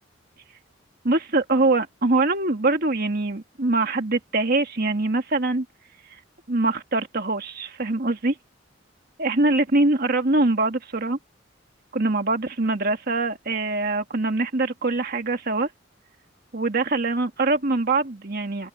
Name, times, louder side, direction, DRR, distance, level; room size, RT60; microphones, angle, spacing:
voice 1, 1.0-5.7 6.5-8.3 9.2-11.2 11.9-15.7 16.5-18.7, right 2 dB, 55° right, 1.9 m, -23 dB
head